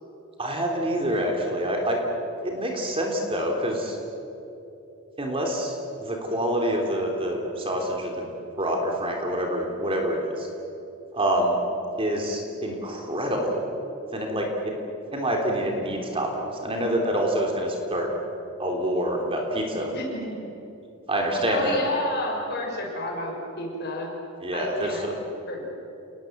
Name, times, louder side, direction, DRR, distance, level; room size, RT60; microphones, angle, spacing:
voice 1, 0.4-2.0 2.4-4.0 5.2-8.2 8.6-10.5 11.1-11.6 12.0-13.6 14.1-14.7 15.1-18.1 18.6-19.9 21.1-21.8 24.4-25.1, right 1 dB, 25° right, 1 dB, 3.3 m, -26 dB
voice 2, 19.9-20.5 21.3-24.1 24.5-25.0 25.5-25.7, left 1 dB, 50° left, 0 dB, 6.5 m, -31 dB
30.0 x 20.0 x 8.0 m, 2.9 s
head